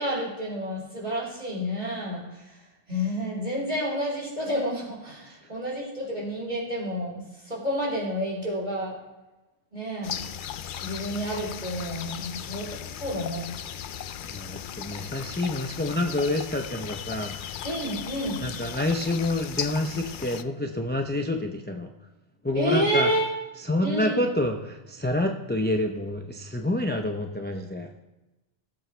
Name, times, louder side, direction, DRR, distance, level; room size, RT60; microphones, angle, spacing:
voice 1, 0.0-2.6 2.9-8.9 9.7-10.2 10.8-12.7 13.0-13.5 17.6-18.4 22.5-23.3 23.8-24.3, equal, 45° right, -5 dB, 4.5 m, -29 dB
sound 1, 10.0-20.4, left 9 dB, 60° left, 0.6 m, -37 dB
voice 2, 14.2-17.4 18.4-21.9 22.4-23.1 23.6-27.9, left 1 dB, 10° left, 3 dB, 0.7 m, -28 dB
19.0 x 7.8 x 3.4 m, 1.1 s
omnidirectional pair, 1.1 m